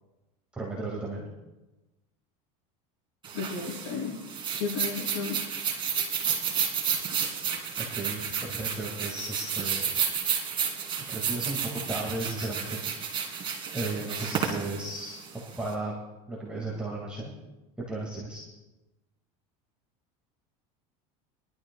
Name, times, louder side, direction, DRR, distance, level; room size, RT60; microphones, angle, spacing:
voice 1, 0.6-1.3 7.8-10.0 11.1-12.8 13.7-15.2 15.6-15.9 16.3-17.3 17.9-18.4, right 2 dB, 5° right, -4 dB, 2.1 m, -35 dB
sound 1, 3.2-15.7, right 7 dB, 30° right, 2.5 m, -31 dB
voice 2, 3.3-4.2 4.6-5.4, left 5 dB, 65° left, -2 dB, 4.8 m, -33 dB
22.5 x 12.5 x 2.4 m, 1.1 s
supercardioid pair, 145°, 18 cm